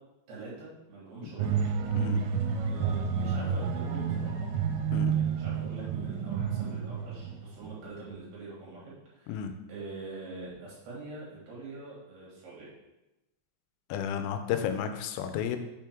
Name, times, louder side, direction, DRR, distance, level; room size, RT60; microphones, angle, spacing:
voice 1, 0.3-1.6 2.7-4.5 5.1-12.7, right 3 dB, 65° right, -7 dB, 3.1 m, -44 dB
sound 1, 1.4-7.8 8.1-8.2, right 6 dB, 85° right, 3.1 m, -30 dB
voice 2, 13.9-15.6, left 8 dB, 90° left, 8 dB, 3.2 m, -32 dB
7.0 x 3.6 x 4.5 m, 0.97 s
omnidirectional pair, 5.7 m